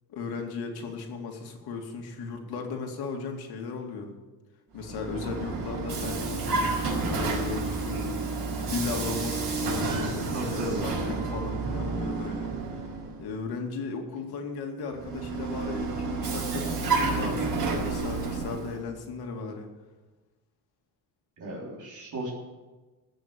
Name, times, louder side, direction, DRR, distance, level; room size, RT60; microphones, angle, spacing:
voice 1, 0.1-4.1 4.7-8.4 8.7-12.5 13.2-19.7, left 4 dB, 75° left, 3 dB, 2.6 m, -36 dB
Vehicle, 4.7-13.2 14.9-18.8, right 3 dB, 65° right, 5.2 m, -30 dB
voice 2, 10.3-11.2 21.4-22.3, right 2 dB, 50° right, -3 dB, 3.6 m, -35 dB
15.5 x 6.5 x 9.7 m, 1.2 s
cardioid pair, 160°, 38 cm